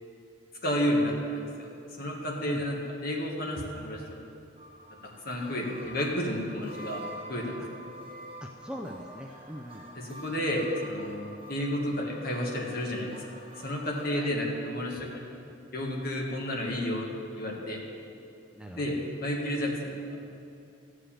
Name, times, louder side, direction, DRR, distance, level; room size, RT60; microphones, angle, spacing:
voice 1, 0.6-1.7 2.0-4.0 5.2-7.0 7.3-7.8 9.9-13.2 13.6-15.2 15.7-17.1 17.3-17.8 18.8-19.9, equal, 45° left, -1 dB, 1.8 m, -31 dB
sound 1, 4.6-14.1, right 1 dB, 25° right, 1.5 m, -47 dB
voice 2, 8.4-9.9 14.2-14.4 18.5-19.0, equal, 5° right, 1 dB, 0.4 m, -41 dB
14.0 x 4.9 x 8.9 m, 2.7 s
head